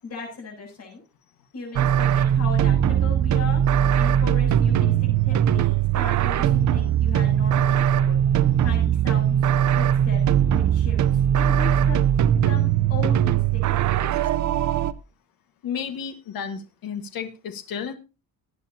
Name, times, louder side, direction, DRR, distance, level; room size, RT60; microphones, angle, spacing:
voice 1, 0.0-1.0 1.5-3.6 4.0-8.2 8.6-9.4 9.7-12.0 12.4-14.2, left 4 dB, 40° left, 0 dB, 7.7 m, -37 dB
sound 1, 1.7-14.9, right 10 dB, 50° right, 0.6 m, -20 dB
voice 2, 15.6-17.9, left 7 dB, 70° left, 7 dB, 1.7 m, -32 dB
19.0 x 9.3 x 2.8 m, 0.29 s
cardioid pair, 180°, 37 cm